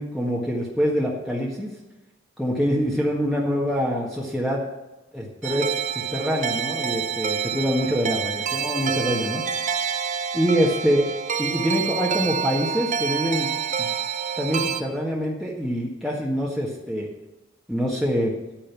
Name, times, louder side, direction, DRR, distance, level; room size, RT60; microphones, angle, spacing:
voice 1, 0.0-1.7 2.4-4.6 5.1-9.4 10.3-11.0 11.4-13.5 13.8-13.9 14.4-17.1 17.7-18.3, equal, ahead, -4 dB, 1.7 m, -25 dB
sound 1, 5.4-14.8, right 7 dB, 40° right, 0.9 m, -27 dB
11.0 x 8.9 x 6.1 m, 1.1 s
head